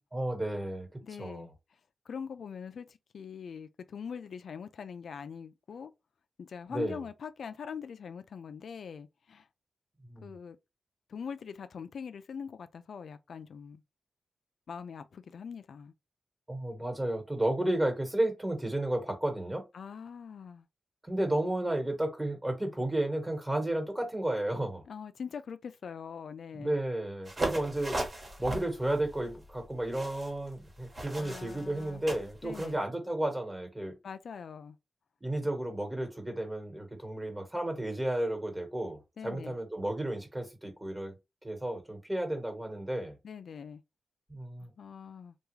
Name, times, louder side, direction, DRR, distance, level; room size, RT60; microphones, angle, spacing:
voice 1, 0.1-1.5 6.7-7.0 10.1-10.3 16.5-19.6 21.0-24.8 26.6-28.0 28.4-33.9 35.2-41.1 41.4-43.2 44.3-44.7, right 1 dB, 15° right, 1.4 m, -32 dB
voice 2, 1.0-1.5 2.1-5.9 6.4-9.5 10.2-10.6 11.1-13.8 14.7-15.9 19.7-20.7 24.9-26.7 31.2-32.0 32.4-32.8 34.0-34.8 39.2-39.6 43.2-43.8 44.8-45.3, left 6 dB, 80° left, 0.3 m, -43 dB
sound 1, 27.3-32.7, right 1 dB, 35° right, 1.2 m, -38 dB
3.4 x 2.3 x 3.1 m
wide cardioid pair, 100°, 0 cm